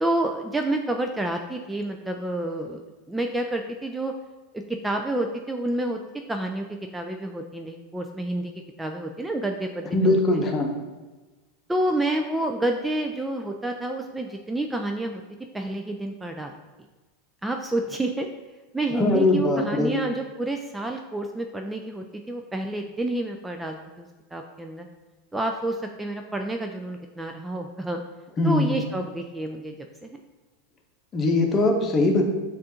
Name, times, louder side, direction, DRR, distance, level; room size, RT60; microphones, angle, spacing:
voice 1, 0.0-2.8 3.1-4.1 4.8-6.0 6.3-6.7 6.9-8.5 8.8-10.4 11.7-15.2 15.5-16.5 17.4-18.3 18.7-24.9 25.3-28.0 28.4-29.8 30.0-30.2, right 1 dB, 10° right, 4 dB, 0.3 m, -29 dB
voice 2, 9.9-10.7 18.9-19.9 28.4-28.8 31.1-32.3, left 2 dB, 30° left, 2 dB, 0.8 m, -21 dB
7.3 x 2.5 x 2.8 m, 1.2 s
hypercardioid pair, 95°, 0 cm